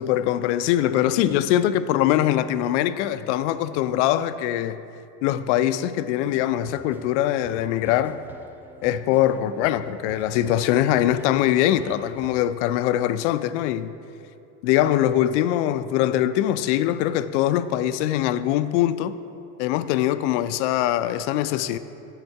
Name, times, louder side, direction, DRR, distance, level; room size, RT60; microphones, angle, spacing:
voice 1, 0.0-4.8 5.2-8.2 8.8-13.9 14.6-19.1 19.6-21.8, left 12 dB, 75° left, 13 dB, 0.5 m, -22 dB
sound 1, 6.2-12.3, right 1 dB, 5° right, 0.4 m, -46 dB
8.0 x 7.2 x 4.6 m, 2.6 s
supercardioid pair, 125°, 35 cm